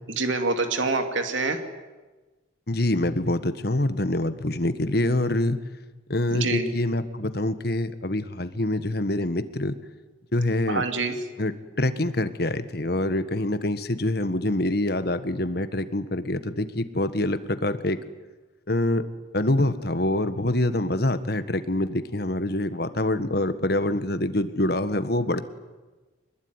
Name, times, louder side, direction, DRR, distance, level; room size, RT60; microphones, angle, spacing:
voice 1, 0.1-1.6 6.3-6.7 10.7-11.2, right 3 dB, 75° right, 6 dB, 2.7 m, -26 dB
voice 2, 2.7-5.6 6.1-9.8 10.3-10.8 11.4-11.5 11.8-18.0 18.7-19.0 19.3-25.4, left 1 dB, 50° left, 11 dB, 1.5 m, -25 dB
24.5 x 21.0 x 9.7 m, 1.2 s
head